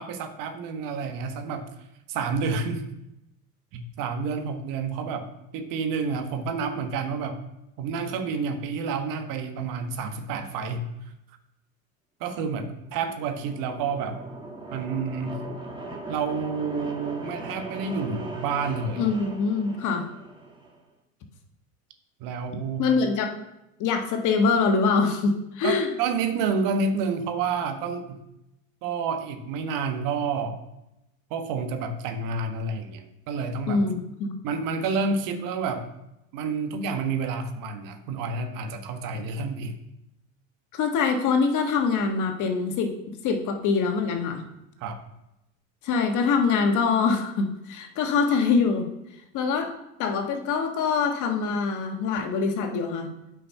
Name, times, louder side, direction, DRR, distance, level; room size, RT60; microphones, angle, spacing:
voice 1, 0.0-1.6 2.1-2.8 3.7-7.4 7.8-10.8 12.2-14.2 14.7-15.4 16.1-19.1 22.2-22.9 25.6-28.2 28.8-30.6 31.3-33.8 34.4-35.9 36.3-39.7 44.8-45.0, right 4 dB, 50° right, 6 dB, 1.4 m, -29 dB
sound 1, 12.9-20.8, right 2 dB, 10° right, 1.9 m, -39 dB
voice 2, 19.0-20.1 22.8-23.3 23.8-25.9 33.7-34.3 40.7-42.9 43.2-44.4 45.8-48.9 49.3-53.1, left 5 dB, 45° left, 5 dB, 1.6 m, -24 dB
8.5 x 5.4 x 5.5 m, 0.88 s
hypercardioid pair, 85°, 41 cm